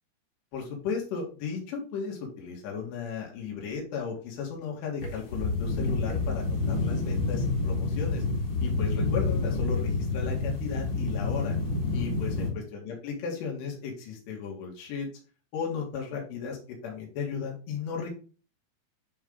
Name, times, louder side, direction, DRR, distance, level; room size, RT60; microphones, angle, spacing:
voice 1, 0.5-8.2 8.6-11.6 11.9-15.1 15.5-18.1, left 6 dB, 75° left, -1 dB, 4.1 m, -35 dB
sound 1, 5.0-12.5, left 3 dB, 40° left, 2.2 m, -28 dB
9.5 x 4.6 x 3.8 m, 0.36 s
omnidirectional pair, 4.9 m